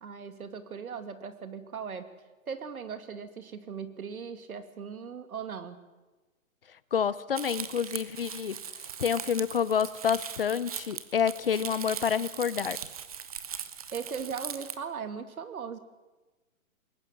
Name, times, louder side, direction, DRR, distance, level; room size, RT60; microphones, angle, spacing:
voice 1, 0.0-2.1 2.5-5.8 13.9-15.8, right 6 dB, 90° right, 9 dB, 2.6 m, -38 dB
voice 2, 6.9-8.6 9.0-12.8, left 7 dB, 40° left, 18 dB, 0.7 m, -28 dB
Crumpling crinkling, 7.3-14.8, right 8 dB, 25° right, 0.8 m, -40 dB
21.5 x 19.0 x 7.7 m, 1.2 s
hypercardioid pair, 170°, 42 cm